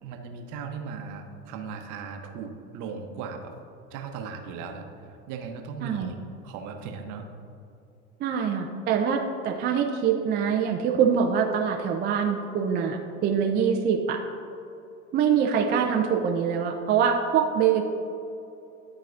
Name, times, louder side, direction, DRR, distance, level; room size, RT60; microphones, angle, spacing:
voice 1, 0.0-3.5 3.9-6.2 6.4-7.3, right 5 dB, 50° right, 4 dB, 0.9 m, -37 dB
voice 2, 8.2-14.2 15.1-17.8, right 7 dB, 25° right, 2 dB, 0.5 m, -24 dB
12.0 x 4.1 x 2.6 m, 2.8 s
hypercardioid pair, 85°, 40 cm